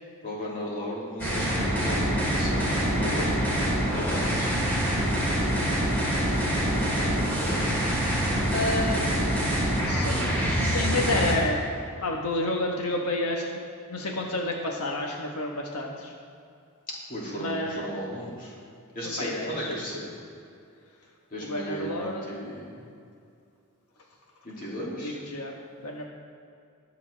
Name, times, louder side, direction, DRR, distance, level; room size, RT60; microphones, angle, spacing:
voice 1, 0.2-3.3 3.9-4.8 6.7-7.6 17.1-18.5 18.9-20.1 21.3-22.7 24.4-25.2, equal, 40° left, -5 dB, 2.6 m, -35 dB
sound 1, 1.2-11.3, equal, 10° left, 2.9 m, -25 dB
voice 2, 8.5-9.0 9.8-13.6 13.9-16.1 17.4-17.9 19.0-19.7 21.4-22.4 25.0-26.0, left 2 dB, 90° left, 0 dB, 1.3 m, -30 dB
20.5 x 7.3 x 3.4 m, 2.5 s
head